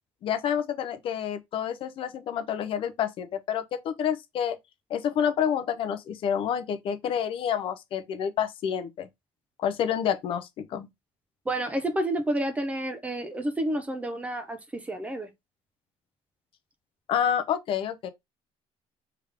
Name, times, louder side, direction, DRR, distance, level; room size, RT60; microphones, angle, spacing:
voice 1, 0.2-4.6 4.9-9.1 9.6-10.9 17.1-18.1, left 8 dB, 45° left, 0.6 m, -28 dB
voice 2, 11.5-15.3, right 1 dB, 10° right, 0.6 m, -30 dB
3.5 x 3.4 x 3.5 m
cardioid pair, 165°, 13 cm